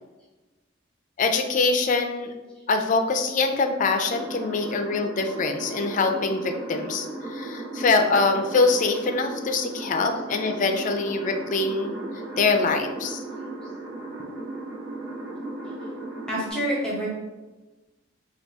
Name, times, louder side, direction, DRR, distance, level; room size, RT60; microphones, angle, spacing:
voice 1, 1.2-2.3 2.7-11.9 12.4-13.2, left 3 dB, 40° left, 5 dB, 0.4 m, -24 dB
sound 1, 4.1-16.5, right 2 dB, 45° right, 1.3 m, -36 dB
voice 2, 16.3-17.1, equal, 5° left, -6 dB, 1.0 m, -27 dB
4.0 x 2.3 x 3.4 m, 1.2 s
head